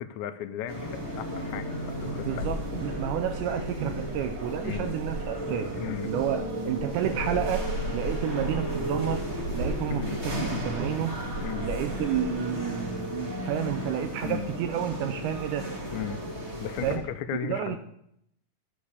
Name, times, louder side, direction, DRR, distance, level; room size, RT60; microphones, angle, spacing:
voice 1, 0.0-2.5 4.6-4.9 5.8-6.1 9.9-10.2 11.4-11.7 14.2-14.5 15.9-16.2 16.6-17.8, left 10 dB, 80° left, 9 dB, 1.9 m, -35 dB
sound 1, 0.7-17.0, equal, 20° right, 2.4 m, -34 dB
sound 2, 1.9-12.4, right 1 dB, 55° right, 2.3 m, -37 dB
voice 2, 2.3-5.7 6.1-11.2 11.6-15.7 16.8-17.0 17.4-17.8, right 10 dB, 80° right, 7 dB, 2.1 m, -31 dB
9.7 x 7.0 x 6.6 m, 0.76 s
omnidirectional pair, 3.6 m